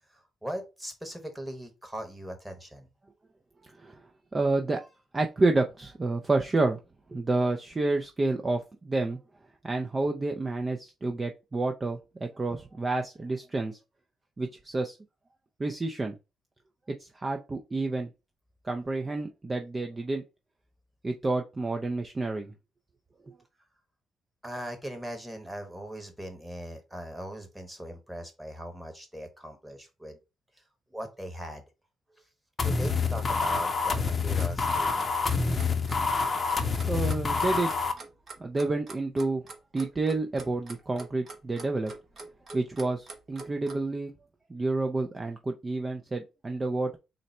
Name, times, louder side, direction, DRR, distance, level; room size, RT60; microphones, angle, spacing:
voice 1, 0.1-2.9 24.4-30.2 30.9-31.6 32.6-35.2, equal, 5° right, 5 dB, 1.2 m, -40 dB
voice 2, 4.3-6.8 7.1-9.2 9.6-13.8 14.4-15.0 15.6-16.1 16.9-18.1 18.6-20.2 21.0-22.5 23.3-23.4 36.9-37.7 38.4-39.4 39.7-41.9 42.5-44.1 44.5-47.0, right 2 dB, 25° right, 4 dB, 0.4 m, -29 dB
sound 1, 32.6-37.9, left 4 dB, 30° left, 0.6 m, -27 dB
Clock, 34.1-43.8, right 3 dB, 40° right, 0.9 m, -44 dB
3.8 x 2.1 x 4.2 m, 0.27 s
cardioid pair, 90°, 0 cm